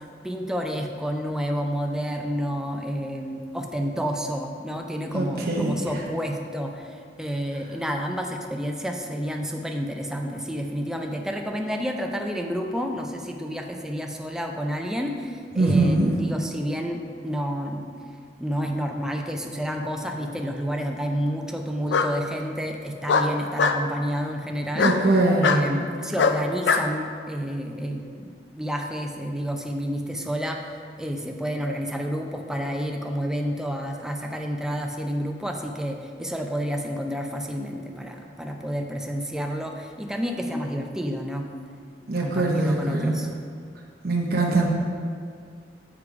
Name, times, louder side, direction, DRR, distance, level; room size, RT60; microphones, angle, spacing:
voice 1, 0.2-17.9 18.4-25.0 25.4-30.7 31.0-41.5 42.2-43.3, equal, 5° right, 2 dB, 0.5 m, -30 dB
voice 2, 5.1-5.7 15.6-16.1 24.8-25.7 42.1-43.2 44.0-44.7, right 2 dB, 60° right, -2 dB, 0.8 m, -22 dB
Bark, 19.7-20.4 21.9-22.1 23.1-23.8 24.8-25.0 25.4-25.6 26.2-26.9, left 5 dB, 85° left, 0.4 m, -22 dB
7.0 x 4.9 x 4.7 m, 2.1 s
head